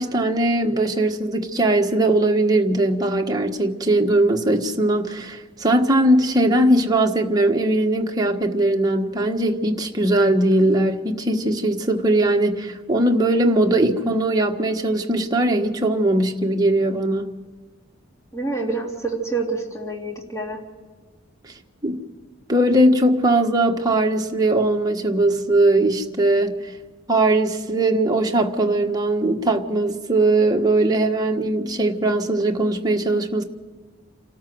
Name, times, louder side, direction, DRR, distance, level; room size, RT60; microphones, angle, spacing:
voice 1, 0.0-17.3 21.8-22.0 22.5-26.6 27.1-33.4, right 1 dB, 20° right, 1.4 m, -20 dB
voice 2, 18.3-20.6, right 3 dB, 15° left, 3.2 m, -27 dB
28.0 x 13.5 x 7.8 m
head